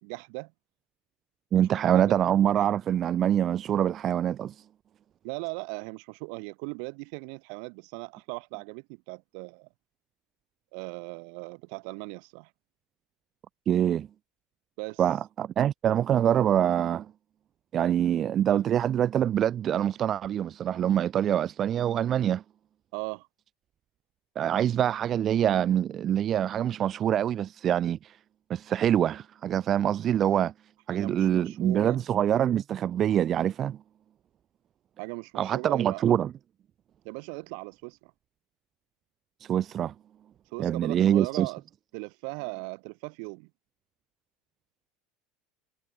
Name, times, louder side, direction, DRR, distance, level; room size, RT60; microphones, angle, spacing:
voice 1, 0.0-0.5 1.8-2.1 5.2-9.7 10.7-12.5 14.8-15.0 22.9-23.3 30.9-32.0 35.0-36.0 37.0-38.1 40.5-41.6 41.9-43.5, right 40 dB or more, 70° right, 1.7 m, -38 dB
voice 2, 1.5-4.5 13.7-14.1 15.0-17.1 17.7-22.4 24.4-28.1 28.5-30.5 30.9-33.8 35.3-36.3 39.4-39.9 40.6-41.5, right 10 dB, 35° right, 0.4 m, -25 dB
supercardioid pair, 130°, 0 cm